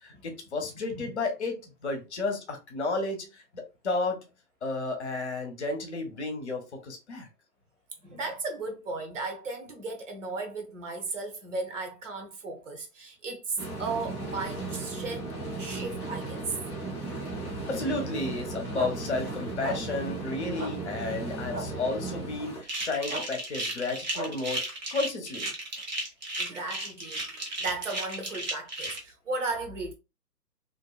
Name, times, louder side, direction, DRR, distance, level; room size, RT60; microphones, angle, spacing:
voice 1, 0.0-4.2 4.6-7.3 17.7-25.5, left 3 dB, 45° left, 0.7 m, -32 dB
voice 2, 8.0-15.3 15.6-16.6 26.4-29.9, right 3 dB, 50° right, 0.9 m, -35 dB
sound 1, 13.6-22.6, right 2 dB, 10° left, 0.6 m, -36 dB
sound 2, 18.8-18.9 19.6-19.8 20.6-20.7 21.5-21.7 23.1-23.2 24.1-24.3, right 2 dB, 80° right, 1.3 m, -33 dB
sound 3, 22.6-29.0, right 2 dB, 30° right, 0.6 m, -34 dB
2.6 x 2.2 x 2.3 m
figure-of-eight pair, 140°, 49 cm